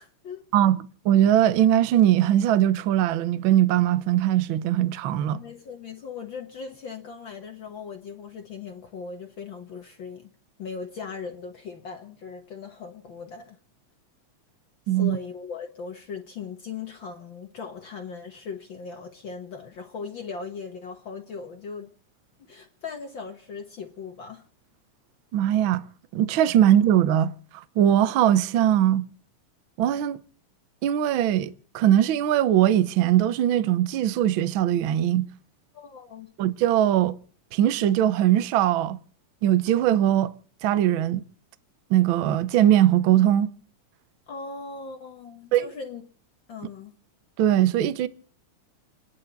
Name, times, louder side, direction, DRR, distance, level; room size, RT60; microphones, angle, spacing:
voice 1, 0.0-0.4 5.3-10.3 10.6-13.6 14.9-21.9 22.5-24.4 35.7-36.3 44.3-46.0 46.5-46.9, left 5 dB, 55° left, 1.6 m, -39 dB
voice 2, 0.5-5.4 14.9-15.2 25.3-25.8 26.1-29.0 29.8-30.2 30.8-35.3 36.4-37.2 37.5-39.0 39.4-40.3 40.6-41.2 41.9-43.5 45.5-45.6 47.4-48.1, right 11 dB, 75° right, 1.1 m, -21 dB
30.0 x 11.0 x 4.0 m
omnidirectional pair, 3.4 m